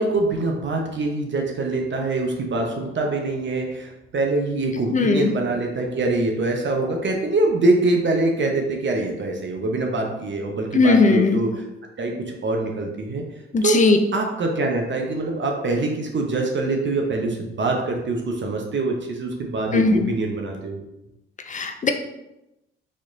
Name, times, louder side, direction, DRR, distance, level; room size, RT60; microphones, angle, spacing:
voice 1, 0.0-11.5 12.0-13.2 13.6-13.8 14.1-20.8, right 2 dB, 40° right, 1 dB, 0.7 m, -24 dB
voice 2, 4.9-5.3 10.7-11.4 13.5-14.0 19.7-20.0 21.5-21.9, left 3 dB, 25° left, 6 dB, 0.5 m, -18 dB
4.2 x 2.9 x 2.6 m, 0.92 s
hypercardioid pair, 50°, 29 cm